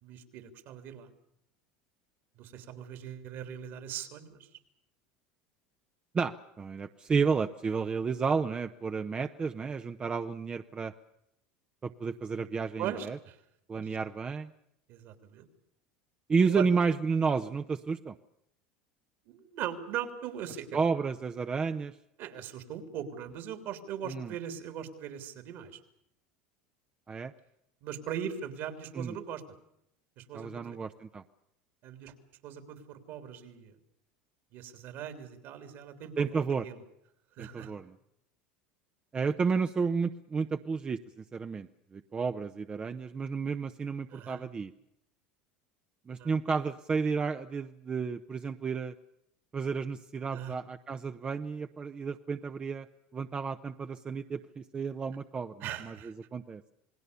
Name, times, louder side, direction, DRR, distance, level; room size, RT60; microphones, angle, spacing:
voice 1, 0.0-1.1 2.3-4.5 12.8-13.4 13.7-14.0 14.9-15.5 16.4-16.6 19.2-20.8 22.2-25.8 27.8-29.4 30.2-30.8 31.8-32.1 32.4-33.8 34.5-36.8 37.4-37.7 44.1-44.4 46.2-46.3 50.3-50.6 55.6-56.1, right 9 dB, 60° right, 9 dB, 3.4 m, -40 dB
voice 2, 6.1-10.9 11.8-13.2 13.7-14.5 16.3-18.2 20.7-21.9 24.1-24.3 27.1-27.3 28.9-29.2 30.3-31.2 36.2-36.6 37.4-37.9 39.1-44.7 46.1-48.9 49.5-52.9 53.1-55.5 55.8-56.6, right 5 dB, 25° right, 8 dB, 0.9 m, -31 dB
28.0 x 20.0 x 6.9 m, 0.78 s
supercardioid pair, 110°, 4 cm